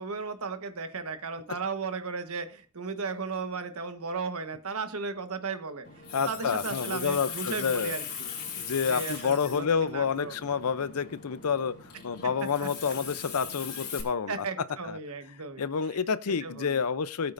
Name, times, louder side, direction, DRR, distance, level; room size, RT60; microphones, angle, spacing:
voice 1, 0.0-5.8 6.2-8.3 8.9-10.4 12.6-12.7 14.3-16.0 16.4-16.8, right 4 dB, 80° right, 9 dB, 1.2 m, -35 dB
Water tap faucet, 5.8-14.0, left 6 dB, 45° left, 4.2 m, -40 dB
voice 2, 6.1-7.9 8.6-11.7 12.0-14.4 14.8-15.0 15.6-17.3, left 6 dB, 90° left, 16 dB, 0.6 m, -29 dB
20.0 x 8.4 x 2.6 m, 0.40 s
head